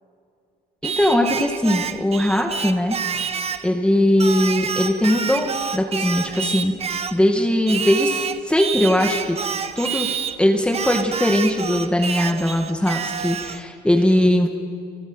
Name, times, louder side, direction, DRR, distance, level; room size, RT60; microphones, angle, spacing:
voice 1, 0.8-3.0 3.6-6.7 7.1-9.4 9.8-10.1 10.4-14.5, left 1 dB, 5° left, 2 dB, 2.2 m, -20 dB
Singing, 0.8-3.7 4.2-7.2 7.7-10.4 10.7-13.6, right 6 dB, 35° right, 1.4 m, -28 dB
29.0 x 25.0 x 8.1 m, 2.4 s
cardioid pair, 110°, 17 cm